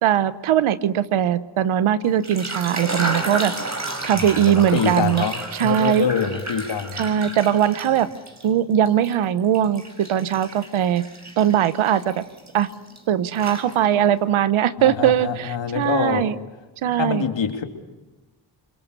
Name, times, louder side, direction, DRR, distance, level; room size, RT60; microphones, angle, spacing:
voice 1, 0.0-3.5 4.0-5.2 5.5-6.1 6.9-8.1 8.4-11.0 11.4-12.2 12.5-12.7 13.1-16.4 16.8-17.2, right 10 dB, 85° right, 15 dB, 1.1 m, -20 dB
sound 1, 2.1-8.5 8.8-13.0 13.3-14.1, right 2 dB, 35° right, 5.9 m, -32 dB
voice 2, 4.1-7.1 14.8-16.2 17.0-17.6, left 7 dB, 65° left, 5 dB, 3.1 m, -25 dB
28.5 x 21.5 x 6.7 m, 1.2 s
supercardioid pair, 50°, 47 cm